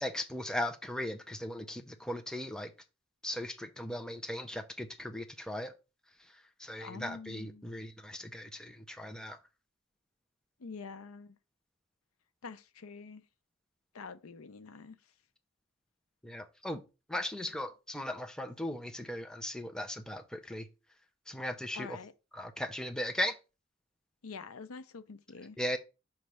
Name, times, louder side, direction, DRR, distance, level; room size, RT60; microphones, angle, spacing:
voice 1, 0.0-2.7 3.2-5.7 6.6-9.4 16.2-16.8 17.1-20.7 21.3-22.0 22.4-23.4 25.6-25.8, left 1 dB, 5° left, 0.5 m, -37 dB
voice 2, 6.8-7.7 10.6-11.4 12.4-13.2 13.9-15.0 17.4-17.6 21.7-22.1 24.2-25.6, left 4 dB, 90° left, 0.6 m, -46 dB
5.8 x 3.2 x 5.2 m
head